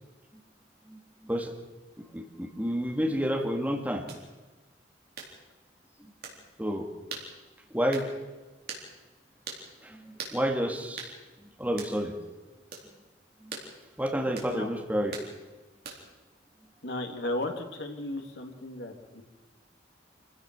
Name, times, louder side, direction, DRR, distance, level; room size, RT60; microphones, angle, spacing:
voice 1, 0.9-1.5 2.0-4.1 6.6-6.9 7.7-8.1 9.8-11.1 11.6-12.1 13.4-13.6 14.0-15.2, equal, 10° right, 2 dB, 1.9 m, -30 dB
sound 1, 4.1-4.2 5.2-5.3 6.2-6.4 7.1-7.3 7.9-8.1 8.7-8.9 9.5-9.6 10.2-10.4 11.0-11.1 11.8-12.0 12.7-12.9 13.5-13.7 14.4-14.5 15.1-15.3 15.8-16.1, right 5 dB, 55° right, 4.0 m, -40 dB
voice 2, 16.8-19.2, left 1 dB, 70° left, 4 dB, 2.5 m, -35 dB
26.0 x 16.0 x 6.2 m, 1.2 s
head